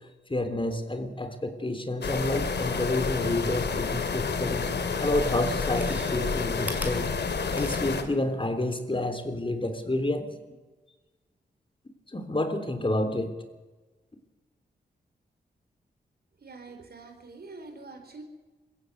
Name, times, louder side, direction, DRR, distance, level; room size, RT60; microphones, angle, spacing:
voice 1, 0.3-4.7 5.0-7.1 7.5-10.3 12.1-13.3, left 1 dB, 30° left, 8 dB, 3.5 m, -29 dB
sound 1, 2.0-8.0, left 5 dB, 70° left, 2.4 m, -29 dB
Chewing mastication, 5.5-8.1 8.5-8.6, right 1 dB, 10° right, 4.5 m, -41 dB
voice 2, 16.4-18.2, right 3 dB, 60° right, 6 dB, 4.5 m, -45 dB
21.5 x 16.0 x 8.0 m, 1.2 s
cardioid pair, 45°, 18 cm